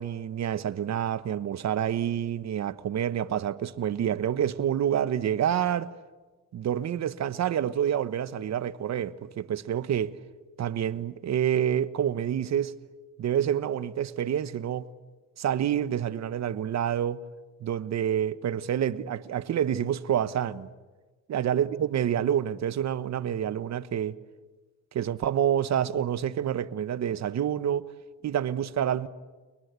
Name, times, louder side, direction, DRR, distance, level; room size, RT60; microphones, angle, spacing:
voice 1, 0.0-5.9 6.5-10.2 10.6-12.7 13.2-14.9 15.4-17.2 17.6-20.7 21.3-24.2 24.9-27.9 28.2-29.1, right 9 dB, 60° right, 1.2 m, -28 dB
30.0 x 21.0 x 8.2 m
cardioid pair, 90°, 30 cm